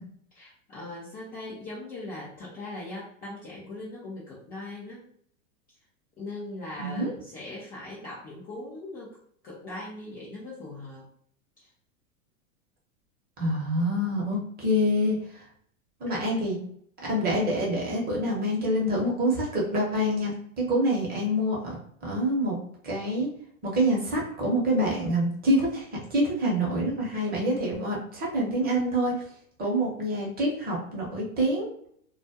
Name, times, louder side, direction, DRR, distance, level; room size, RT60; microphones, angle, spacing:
voice 1, 0.3-5.0 6.2-9.2 9.4-11.0 11.6-11.7 16.1-16.2 27.3-27.9, left 2 dB, 20° left, -6 dB, 0.5 m, -40 dB
voice 2, 6.8-7.1 13.4-15.2 16.0-16.6 17.1-21.7 22.0-22.6 22.8-23.3 23.6-25.8 26.1-29.1 29.6-31.7, equal, 20° right, -3 dB, 0.8 m, -26 dB
2.3 x 2.1 x 2.7 m, 0.64 s
hypercardioid pair, 110°, 42 cm